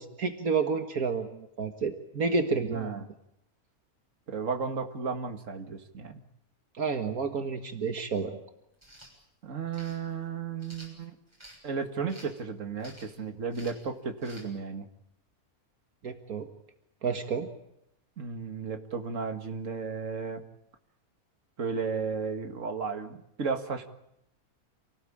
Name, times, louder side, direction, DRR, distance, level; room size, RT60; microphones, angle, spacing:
voice 1, 0.0-3.0 6.8-8.4 16.0-16.5 17.0-17.5, right 5 dB, 75° right, 6 dB, 2.1 m, -30 dB
voice 2, 2.7-3.1 4.3-6.2 9.4-11.2 11.6-14.9 18.2-20.4 21.6-23.9, right 5 dB, 60° right, 6 dB, 2.3 m, -34 dB
sound 1, 8.7-9.1 9.7-10.0 10.6-11.6 12.1-12.4 12.8-13.2 13.5-13.8 14.2-14.5, right 1 dB, 20° right, 6.8 m, -50 dB
28.0 x 18.5 x 8.6 m, 0.80 s
omnidirectional pair, 1.5 m